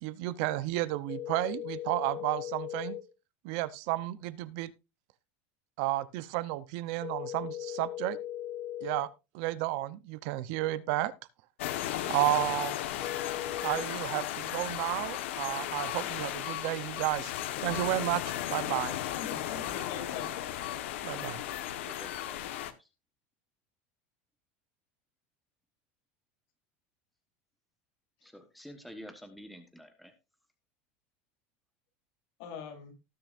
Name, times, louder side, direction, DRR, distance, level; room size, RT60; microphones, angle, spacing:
voice 1, 0.0-3.0 3.4-4.7 5.8-8.2 8.8-9.1 9.3-11.1 12.1-12.8 13.6-17.3 17.6-18.2 18.5-19.0 21.0-21.4, right 16 dB, 55° right, 16 dB, 0.7 m, -32 dB
sound 1, 1.1-3.0 7.0-9.0 13.0-13.8, left 11 dB, 40° left, 3.8 m, -38 dB
sound 2, 11.6-22.7, left 12 dB, 80° left, 1.2 m, -35 dB
voice 2, 18.9-20.5 32.4-32.9, left 6 dB, 55° left, 4 dB, 3.5 m, -43 dB
voice 3, 21.6-22.4 22.8-22.9 28.2-30.1, equal, ahead, 6 dB, 1.1 m, -49 dB
18.5 x 6.9 x 2.5 m, 0.26 s
supercardioid pair, 165°, 6 cm